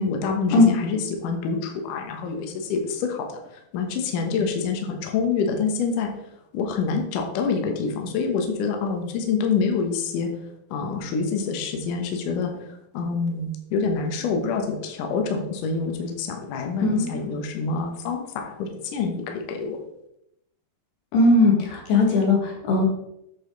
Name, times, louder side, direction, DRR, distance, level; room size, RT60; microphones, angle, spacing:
voice 1, 0.0-3.4 3.7-6.1 6.5-10.3 10.7-19.8, left 5 dB, 65° left, 3 dB, 2.4 m, -26 dB
voice 2, 16.8-17.2 21.1-22.9, left 2 dB, 90° left, 0 dB, 3.8 m, -18 dB
8.4 x 6.5 x 3.9 m, 0.80 s
omnidirectional pair, 4.5 m